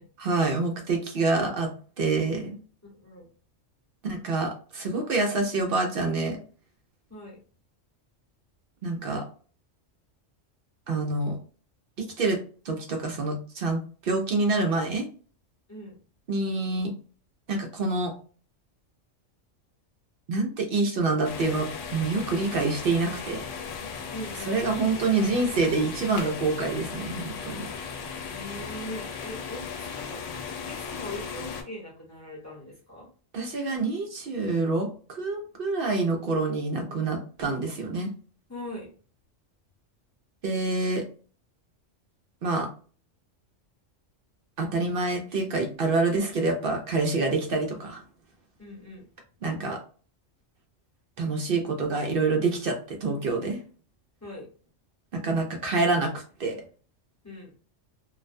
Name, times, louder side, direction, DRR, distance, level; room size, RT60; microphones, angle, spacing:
voice 1, 0.2-1.7 2.0-2.6 4.0-6.4 8.8-9.2 10.9-11.4 12.0-12.4 12.6-15.1 16.3-17.0 17.5-18.1 20.3-23.5 24.3-27.7 33.3-38.1 40.4-41.0 42.4-42.7 44.6-48.0 49.4-49.8 51.2-53.6 55.1-56.6, right 3 dB, 60° right, 3 dB, 0.6 m, -27 dB
voice 2, 2.8-3.2 7.1-7.4 15.7-16.0 24.1-25.0 27.6-27.7 28.3-30.2 30.6-33.1 38.5-38.9 48.6-49.0 54.2-54.5 57.2-57.5, left 1 dB, 15° left, -5 dB, 0.8 m, -41 dB
sound 1, 21.2-31.6, left 6 dB, 80° left, 0.9 m, -37 dB
2.4 x 2.1 x 2.5 m, 0.40 s
omnidirectional pair, 1.3 m